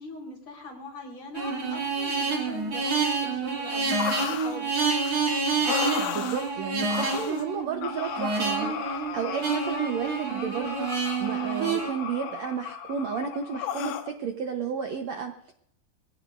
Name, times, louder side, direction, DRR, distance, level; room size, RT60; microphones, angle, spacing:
voice 1, 0.0-4.8, left 1 dB, 40° left, 0 dB, 5.4 m, -41 dB
sound 1, 1.4-11.9, right 4 dB, 40° right, 3.7 m, -28 dB
sound 2, 4.0-4.6 5.0-5.1 5.6-6.5 6.9-7.4 7.8-14.1, left 9 dB, 85° left, 3.1 m, -35 dB
voice 2, 5.6-15.5, right 6 dB, 85° right, 4 dB, 1.5 m, -32 dB
22.0 x 17.0 x 2.6 m, 0.67 s
omnidirectional pair, 4.7 m